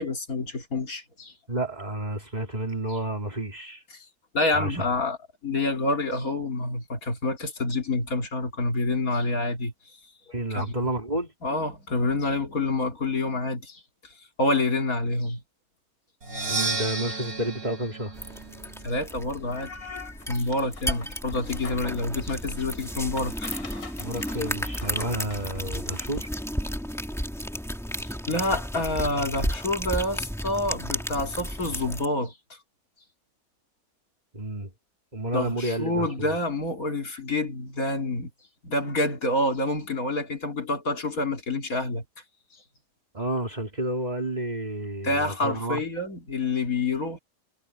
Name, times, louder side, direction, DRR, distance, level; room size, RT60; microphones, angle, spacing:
voice 1, 0.0-1.3 3.9-4.0 4.3-5.2 5.4-9.7 10.5-10.6 11.4-13.8 14.4-15.4 18.8-23.5 28.0-32.6 35.3-38.3 38.6-42.0 45.0-47.2, left 2 dB, 70° left, 3.3 m, -28 dB
voice 2, 1.5-3.8 4.5-4.9 10.3-11.3 16.5-18.1 24.0-26.3 34.3-34.7 35.1-36.3 43.1-45.8, right 1 dB, 30° right, 3.2 m, -30 dB
Percussion, 16.2-20.0, right 3 dB, 90° right, 4.3 m, -34 dB
sound 1, 18.1-32.1, equal, ahead, 2.3 m, -33 dB
sound 2, 20.2-26.3 26.7-26.8, left 4 dB, 90° left, 3.4 m, -46 dB
omnidirectional pair, 1.5 m